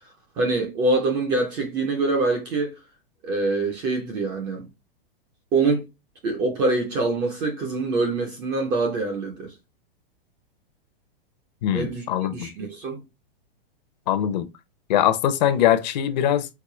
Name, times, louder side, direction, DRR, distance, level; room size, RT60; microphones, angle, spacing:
voice 1, 0.4-2.8 3.2-4.7 5.5-5.9 6.2-9.5 11.7-12.0 12.3-13.0, right 3 dB, 15° right, 0.3 m, -24 dB
voice 2, 11.6-12.5 14.1-14.5 14.9-16.5, left 11 dB, 45° left, 0.6 m, -22 dB
4.8 x 2.6 x 3.7 m
supercardioid pair, 160°, 30 cm